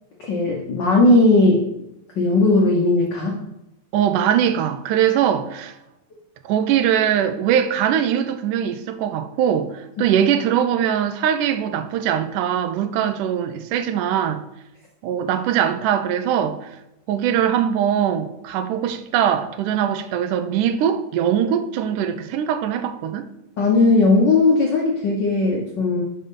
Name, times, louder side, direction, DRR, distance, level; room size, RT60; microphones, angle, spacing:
voice 1, 0.2-1.6 2.2-3.3 23.6-26.0, left 2 dB, 80° left, 1.0 m, -17 dB
voice 2, 3.9-5.7 6.5-14.4 15.0-16.7 17.1-23.3, right 9 dB, 80° right, 2.2 m, -21 dB
11.0 x 5.4 x 3.7 m
omnidirectional pair, 3.6 m